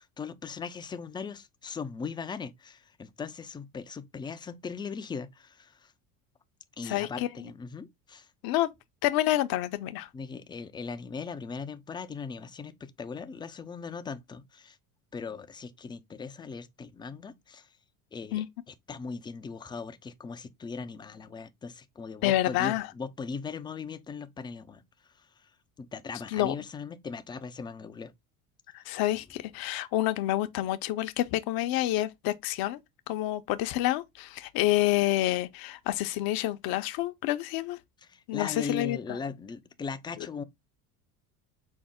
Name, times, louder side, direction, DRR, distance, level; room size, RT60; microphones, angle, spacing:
voice 1, 0.0-5.9 6.8-8.3 10.1-14.8 15.1-17.7 18.1-18.4 18.9-24.8 25.1-25.5 25.8-28.1 28.7-28.9 38.1-40.4, left 5 dB, 10° left, 0.3 m, -39 dB
voice 2, 6.9-7.3 8.4-8.7 9.0-10.1 18.3-18.5 22.2-22.9 26.3-26.5 28.7-32.8 33.1-37.8 38.3-39.0, left 15 dB, 60° left, 0.7 m, -28 dB
5.2 x 2.0 x 3.5 m
supercardioid pair, 90°, 42 cm